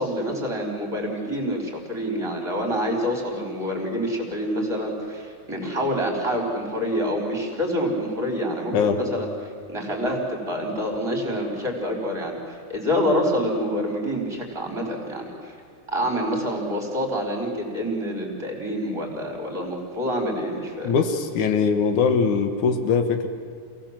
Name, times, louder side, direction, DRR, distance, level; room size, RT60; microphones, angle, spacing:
voice 1, 0.0-9.3 9.7-15.5 15.9-20.9, equal, 10° right, 0 dB, 4.8 m, -27 dB
voice 2, 20.8-23.3, left 5 dB, 70° left, 7 dB, 3.0 m, -21 dB
28.0 x 18.0 x 7.7 m, 2.4 s
omnidirectional pair, 3.7 m